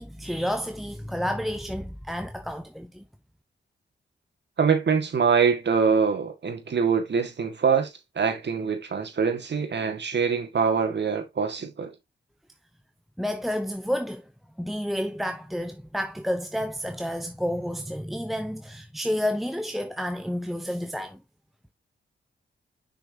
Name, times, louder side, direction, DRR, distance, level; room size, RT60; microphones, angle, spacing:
voice 1, 0.0-3.0 13.2-14.2 14.6-21.2, equal, ahead, 0.8 m, -30 dB
voice 2, 4.6-11.9, right 6 dB, 65° right, 1.9 m, -24 dB
6.2 x 5.9 x 2.8 m
cardioid pair, 55°, 20 cm